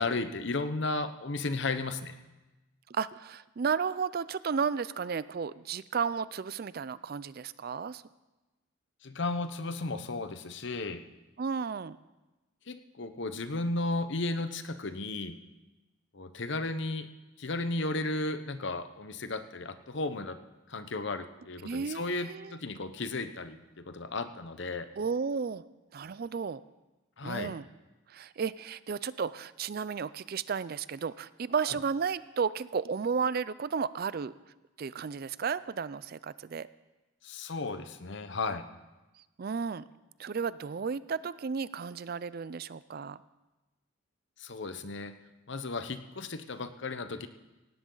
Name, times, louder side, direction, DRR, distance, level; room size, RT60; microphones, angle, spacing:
voice 1, 0.0-2.1 9.0-11.0 12.7-15.4 16.1-17.1 17.4-20.4 20.7-24.9 27.2-27.5 31.7-31.8 37.2-38.7 44.4-45.1 45.5-47.3, left 2 dB, 55° left, 10 dB, 0.9 m, -34 dB
voice 2, 2.9-8.0 11.4-12.0 21.6-22.6 25.0-25.6 25.9-26.6 27.2-27.6 28.1-34.3 34.8-36.7 39.4-39.9 40.2-43.2, right 6 dB, 45° right, 17 dB, 0.4 m, -33 dB
17.5 x 17.0 x 3.9 m, 1.1 s
head